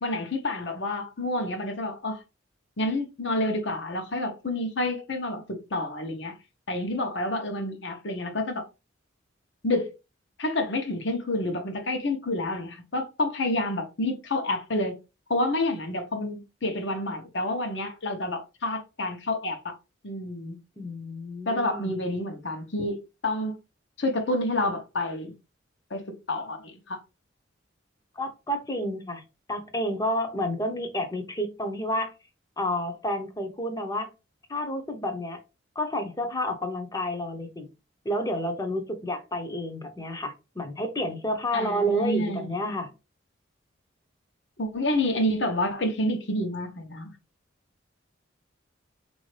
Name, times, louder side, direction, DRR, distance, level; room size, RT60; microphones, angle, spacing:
voice 1, 0.0-2.2 2.8-6.3 6.7-8.7 9.6-9.9 10.4-15.0 15.3-19.7 20.0-20.6 21.5-23.6 24.0-25.3 25.9-27.0 41.5-42.5 44.6-47.1, left 1 dB, 65° left, 0.9 m, -29 dB
voice 2, 20.8-22.0 28.2-29.2 29.5-32.1 32.6-34.1 34.5-35.4 35.8-37.7 38.0-42.9, equal, 20° left, 0.7 m, -30 dB
4.2 x 2.7 x 3.2 m
head